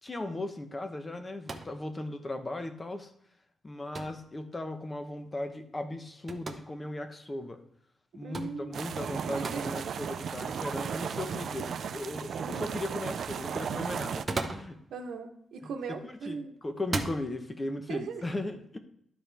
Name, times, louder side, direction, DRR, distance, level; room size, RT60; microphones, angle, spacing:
voice 1, 0.0-3.1 3.6-7.6 8.1-14.8 16.0-18.8, left 2 dB, 20° left, 7 dB, 0.8 m, -37 dB
sound 1, 1.4-1.8 4.0-4.2 6.3-6.6 8.3-8.6 9.4-9.6 10.6-10.7 14.0-14.8 15.9-16.2 16.8-17.2, right 3 dB, 25° right, 0.7 m, -35 dB
voice 2, 8.2-9.7 12.4-12.8 14.9-16.6 17.9-18.2, right 5 dB, 80° right, 4 dB, 1.0 m, -39 dB
sound 2, 8.7-14.2, right 7 dB, 60° right, 0.3 m, -35 dB
12.5 x 4.4 x 3.4 m, 0.72 s
wide cardioid pair, 145°, 0 cm